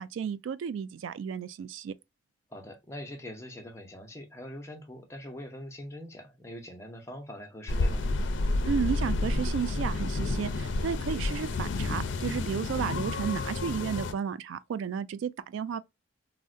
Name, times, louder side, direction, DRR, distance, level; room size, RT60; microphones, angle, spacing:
voice 1, 0.0-1.9 8.6-15.8, right 7 dB, 80° right, 0.3 m, -33 dB
voice 2, 2.5-8.1, left 1 dB, 15° left, 0.6 m, -43 dB
sound 1, 7.7-14.1, left 2 dB, 70° left, 0.4 m, -30 dB
3.6 x 2.1 x 2.4 m
head